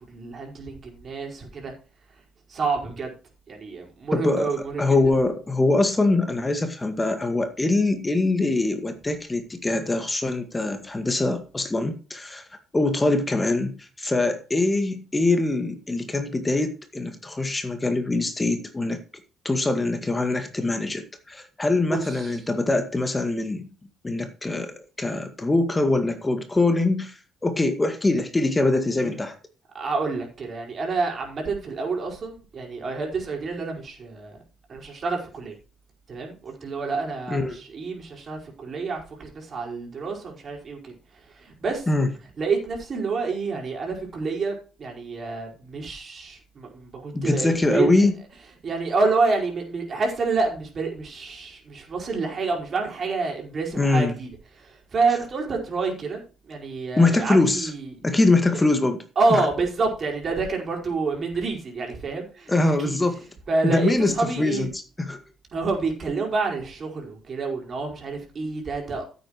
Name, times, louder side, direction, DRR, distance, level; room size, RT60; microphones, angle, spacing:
voice 1, 0.1-1.7 2.5-3.1 3.5-4.8 21.9-22.3 29.0-29.2 29.7-34.4 34.7-35.5 36.1-40.9 41.4-41.8 42.4-44.5 44.8-47.9 48.6-54.3 54.6-57.9 58.5-58.6 59.2-62.6 62.8-63.0 63.5-64.7 65.5-69.0, right 4 dB, 45° right, 0 dB, 4.9 m, -28 dB
voice 2, 4.1-4.5 4.8-12.4 12.7-19.0 19.4-23.7 24.0-29.4 37.3-37.6 41.9-42.1 47.1-48.1 53.8-54.1 57.0-57.7 58.0-59.0 59.3-59.5 62.5-63.2 63.6-65.2, left 2 dB, 20° left, 7 dB, 1.8 m, -23 dB
15.0 x 8.5 x 3.1 m, 0.35 s
figure-of-eight pair, 45°, 0 cm